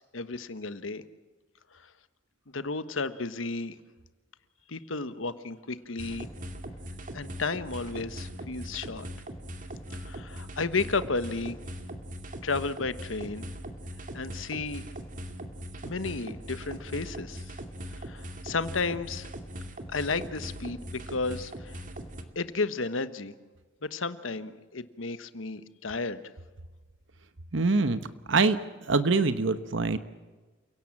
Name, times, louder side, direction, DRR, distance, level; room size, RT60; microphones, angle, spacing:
voice 1, 0.1-1.0 2.5-3.8 4.7-6.3 7.1-9.1 9.9-11.6 12.4-13.4 14.1-14.8 15.8-17.5 17.9-19.3 19.9-21.8 22.3-23.3 23.8-26.2, left 3 dB, 85° left, 13 dB, 1.3 m, -33 dB
sound 1, 6.0-22.2, equal, 40° right, 2.4 m, -40 dB
voice 2, 27.5-30.0, right 3 dB, 70° right, 12 dB, 1.1 m, -25 dB
29.5 x 17.0 x 7.5 m, 1.3 s
head